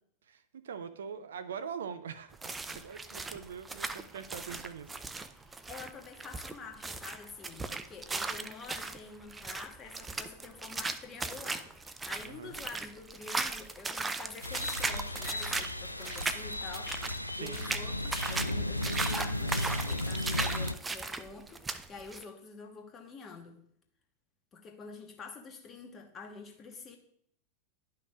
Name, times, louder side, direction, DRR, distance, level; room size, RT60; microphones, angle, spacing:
voice 1, 0.2-4.9 12.2-12.6 17.3-17.8, right 7 dB, 65° right, 11 dB, 0.5 m, -43 dB
sound 1, 2.3-22.2, right 3 dB, 10° right, 0.4 m, -37 dB
voice 2, 5.3-16.9 17.4-23.6 24.5-27.0, left 4 dB, 25° left, 4 dB, 1.2 m, -47 dB
sound 2, 14.4-20.7, left 1 dB, 85° left, 0.3 m, -35 dB
11.0 x 5.7 x 2.4 m, 0.67 s
figure-of-eight pair, 90°, 0 cm